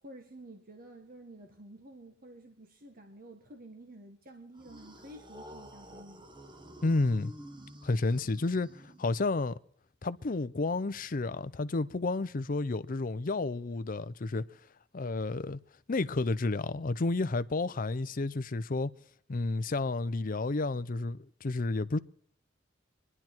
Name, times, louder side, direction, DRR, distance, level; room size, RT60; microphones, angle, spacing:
voice 1, 0.0-6.3, right 1 dB, 50° right, 1.5 m, -51 dB
sound 1, 4.6-9.4, equal, 25° right, 1.3 m, -50 dB
voice 2, 6.8-7.3 7.8-8.7 9.0-9.6 10.0-14.5 14.9-15.6 15.9-18.9 19.3-22.0, left 3 dB, 45° left, 0.6 m, -31 dB
25.0 x 11.0 x 4.5 m
head